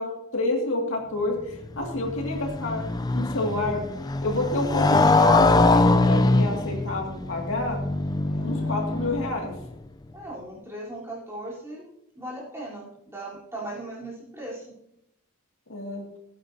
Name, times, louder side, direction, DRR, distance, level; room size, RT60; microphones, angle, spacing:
voice 1, 0.0-3.8 4.2-7.8 8.4-9.5 15.7-16.0, left 2 dB, 65° left, 0 dB, 2.2 m, -28 dB
Motorcycle, 1.5-9.7, left 2 dB, 15° left, 0.4 m, -23 dB
voice 2, 8.3-8.7 10.1-14.8, right 1 dB, 10° right, -6 dB, 3.6 m, -38 dB
18.0 x 8.9 x 2.8 m, 0.79 s
head